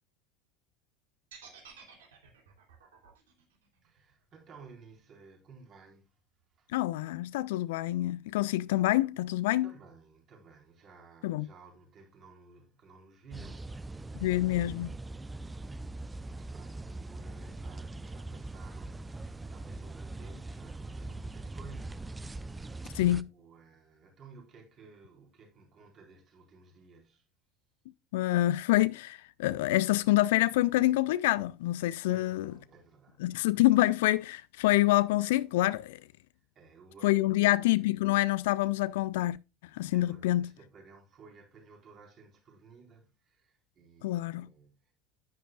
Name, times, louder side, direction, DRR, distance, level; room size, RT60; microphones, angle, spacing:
sound 1, 1.3-5.4, right 6 dB, 70° right, 3.0 m, -54 dB
voice 1, 3.8-6.1 6.6-6.7 9.6-15.9 16.2-27.2 32.1-33.6 36.5-37.9 39.9-44.9, right 4 dB, 40° right, 4.0 m, -56 dB
voice 2, 6.7-9.7 11.2-11.5 14.1-14.9 22.9-23.3 28.1-32.5 33.2-36.0 37.0-39.4 39.7-40.5 44.0-44.5, left 16 dB, 60° left, 0.4 m, -27 dB
sound 2, 13.3-23.2, right 2 dB, 15° right, 0.5 m, -42 dB
10.5 x 10.0 x 2.3 m
figure-of-eight pair, 70°, 0 cm